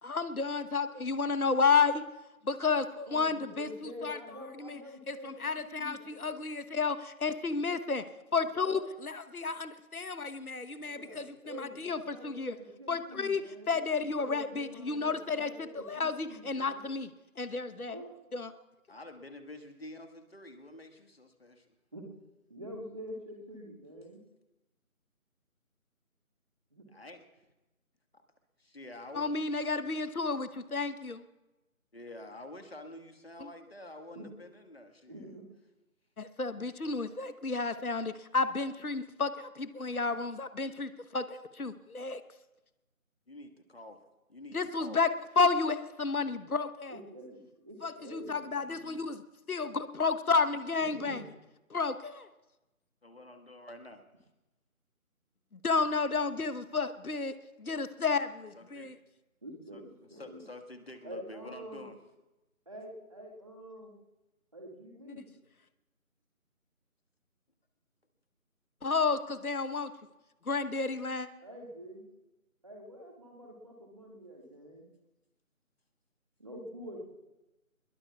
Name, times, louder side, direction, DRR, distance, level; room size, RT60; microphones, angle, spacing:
voice 1, 0.0-2.0 2.4-3.7 4.0-4.2 4.6-4.8 5.1-7.0 7.2-8.0 8.3-12.5 12.9-17.1 17.4-18.0 18.3-18.5 29.1-31.2 33.4-33.5 36.2-42.2 44.5-45.1 45.4-47.0 47.8-49.2 49.5-51.2 51.7-52.3 55.6-58.9 68.8-69.9 70.5-71.3, left 4 dB, 85° left, 12 dB, 1.2 m, -31 dB
voice 2, 3.1-6.3 8.6-8.8 10.8-13.8 14.2-16.9 17.9-18.1 21.9-22.1 22.5-24.2 26.7-26.9 34.1-34.3 35.1-35.4 46.9-49.0 50.8-51.2 58.8-58.9 59.4-60.4 61.0-61.8 62.7-63.9 64.5-65.4 71.4-72.1 72.6-74.9 76.4-77.0, equal, 25° right, -1 dB, 2.0 m, -47 dB
voice 3, 18.9-21.8 26.9-27.2 28.6-29.3 31.9-35.3 43.3-44.0 44.3-45.0 53.0-54.0 58.5-58.9 59.7-59.8 60.1-62.0, left 1 dB, 45° left, 6 dB, 1.6 m, -48 dB
22.0 x 22.0 x 2.4 m, 1.0 s
figure-of-eight pair, 175°, 43 cm